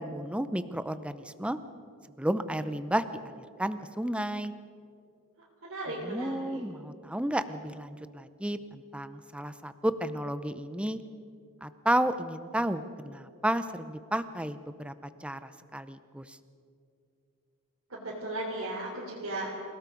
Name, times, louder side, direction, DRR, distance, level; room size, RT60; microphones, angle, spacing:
voice 1, 0.0-1.6 2.2-4.5 6.0-11.0 11.6-14.9 15.2-16.4, right 1 dB, 5° right, 12 dB, 0.7 m, -32 dB
voice 2, 5.4-6.6 17.9-19.5, right 1 dB, 65° right, -6 dB, 3.6 m, -36 dB
28.0 x 18.0 x 5.3 m, 2.4 s
head